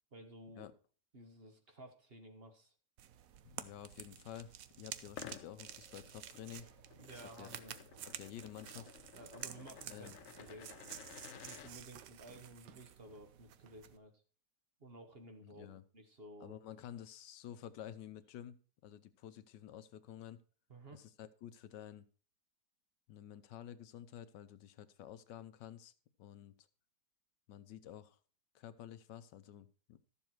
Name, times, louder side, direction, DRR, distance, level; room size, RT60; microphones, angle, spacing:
voice 1, 0.1-0.7 1.1-2.7 7.0-7.8 9.1-10.1 10.4-10.9 11.4-14.1 14.8-16.6 20.7-21.0, right 1 dB, 40° right, 6 dB, 1.3 m, -54 dB
sound 1, 3.0-14.0, right 10 dB, 65° right, 1.0 m, -51 dB
voice 2, 3.4-6.7 7.4-7.5 8.0-8.9 9.8-10.2 15.4-15.8 16.4-20.4 20.9-22.0 23.1-25.9 26.2-26.7 27.5-28.2 28.5-30.0, left 11 dB, 85° left, 13 dB, 1.4 m, -51 dB
sound 2, 5.1-11.7, left 10 dB, 65° left, 0.8 m, -54 dB
Walk footsteps, 7.4-13.9, right 11 dB, 80° right, 1.3 m, -64 dB
12.5 x 7.2 x 4.5 m, 0.39 s
omnidirectional pair, 1.8 m